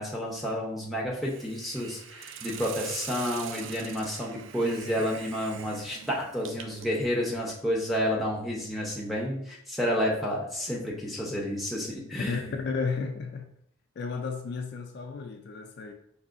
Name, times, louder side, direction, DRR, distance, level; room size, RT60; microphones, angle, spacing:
voice 1, 0.0-12.5, equal, ahead, -4 dB, 0.7 m, -30 dB
Hiss, 1.2-7.0, right 7 dB, 65° right, 0.3 m, -43 dB
voice 2, 12.3-13.5 14.0-15.9, left 4 dB, 55° left, 4 dB, 0.3 m, -33 dB
4.7 x 2.6 x 2.5 m, 0.71 s
head